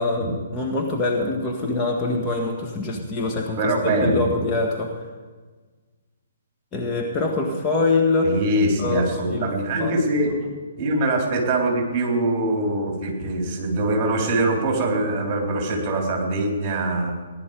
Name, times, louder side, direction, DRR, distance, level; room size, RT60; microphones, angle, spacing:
voice 1, 0.0-5.0 6.7-8.3 8.8-9.5 9.8-9.9 13.0-13.1, left 3 dB, 20° left, 1 dB, 1.7 m, -24 dB
voice 2, 2.9-4.3 8.2-10.3 10.8-17.1, right 2 dB, 30° right, 0 dB, 4.1 m, -23 dB
18.5 x 11.0 x 5.2 m, 1.4 s
figure-of-eight pair, 130°, 0 cm